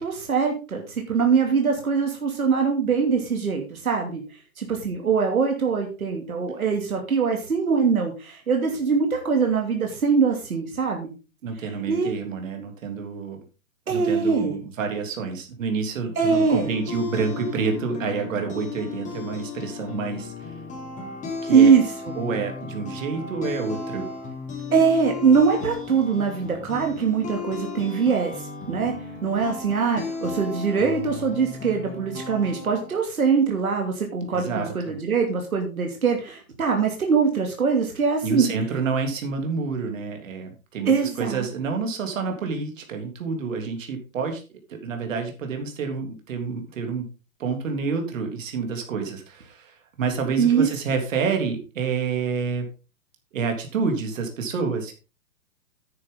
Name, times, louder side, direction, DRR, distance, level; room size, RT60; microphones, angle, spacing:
voice 1, 0.0-4.2 4.6-11.1 11.9-12.1 13.9-14.6 16.2-16.7 21.5-22.1 24.7-28.9 29.2-38.5 40.8-41.5 50.4-50.7, right 5 dB, 85° right, 2 dB, 2.9 m, -22 dB
voice 2, 11.4-13.4 13.9-20.3 21.4-21.7 22.1-24.1 34.3-35.0 38.2-44.4 44.7-47.0 47.4-52.7 53.3-55.0, right 5 dB, 65° right, 4 dB, 3.4 m, -28 dB
sound 1, 16.0-33.0, left 4 dB, 15° left, 3.6 m, -35 dB
9.9 x 9.6 x 3.9 m, 0.33 s
hypercardioid pair, 130°, 42 cm